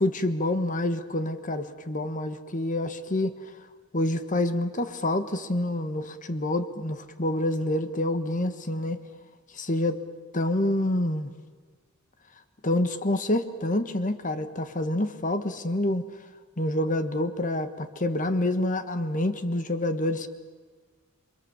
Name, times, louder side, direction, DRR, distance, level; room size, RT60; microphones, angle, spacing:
voice 1, 0.0-3.3 3.9-9.0 9.5-10.0 10.3-11.3 12.6-16.0 16.6-20.3, left 1 dB, 40° left, 10 dB, 1.4 m, -27 dB
28.5 x 24.5 x 7.3 m, 1.5 s
head